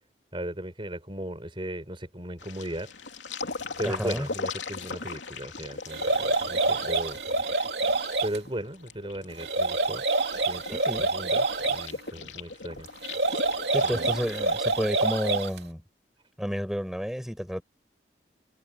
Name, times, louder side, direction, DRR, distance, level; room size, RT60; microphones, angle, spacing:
voice 1, 0.3-2.9 3.8-7.2 8.2-10.0 10.4-12.9 13.8-14.1, right 1 dB, 30° right, 5.9 m, -36 dB
sound 1, 2.4-14.5, left 4 dB, 90° left, 3.2 m, -40 dB
voice 2, 3.8-4.3 10.7-11.1 13.7-15.8 16.4-17.6, equal, ahead, 7.0 m, -30 dB
sound 2, 5.9-8.4 9.4-11.9 13.0-15.6, right 2 dB, 65° right, 3.0 m, -27 dB
head